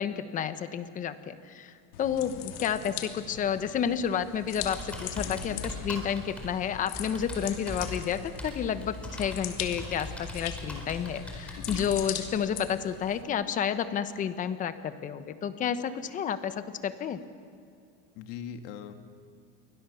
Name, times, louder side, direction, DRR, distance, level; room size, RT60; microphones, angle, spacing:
voice 1, 0.0-5.5 5.8-17.2, left 8 dB, 25° left, 11 dB, 1.1 m, -31 dB
sound 1, 1.9-13.2, left 10 dB, 80° left, 2.8 m, -41 dB
Computer keyboard, 4.6-11.9, left 1 dB, 5° left, 4.6 m, -40 dB
voice 2, 5.1-5.7 11.5-11.9 18.1-18.9, left 8 dB, 65° left, 7 dB, 2.1 m, -40 dB
29.0 x 23.5 x 7.0 m, 2.4 s
cardioid pair, 160°, 29 cm